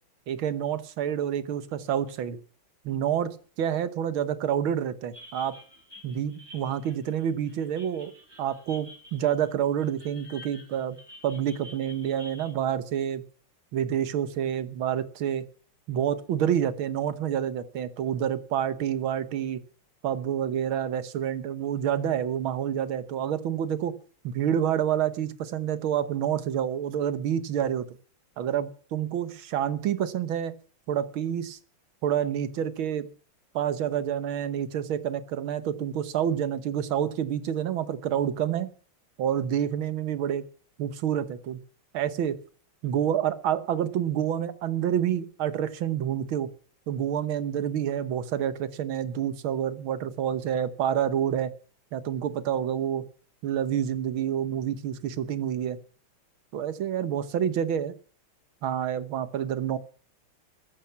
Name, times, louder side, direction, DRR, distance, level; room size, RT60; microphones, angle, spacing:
voice 1, 0.3-2.4 2.9-3.3 3.6-5.6 6.0-8.1 8.4-11.0 11.2-13.2 13.7-15.4 15.9-19.6 20.0-24.0 24.2-27.9 28.4-30.6 30.9-31.6 32.0-33.1 33.5-38.7 39.2-40.4 40.8-41.6 41.9-42.4 42.8-46.5 46.9-51.5 51.9-53.0 53.4-55.8 56.5-57.9 58.6-59.8, right 9 dB, 85° right, 13 dB, 1.9 m, -28 dB
sound 1, 5.1-12.5, left 1 dB, 10° right, 6.5 m, -50 dB
14.5 x 10.5 x 7.1 m, 0.42 s
omnidirectional pair, 2.2 m